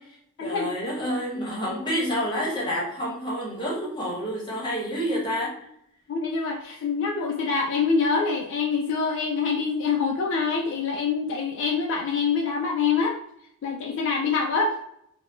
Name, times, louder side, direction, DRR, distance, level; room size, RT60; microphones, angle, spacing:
voice 1, 0.0-5.5, equal, 20° left, -4 dB, 1.0 m, -29 dB
voice 2, 6.1-13.2 13.6-14.7, left 5 dB, 55° left, 0 dB, 0.3 m, -25 dB
3.5 x 2.0 x 2.4 m, 0.73 s
head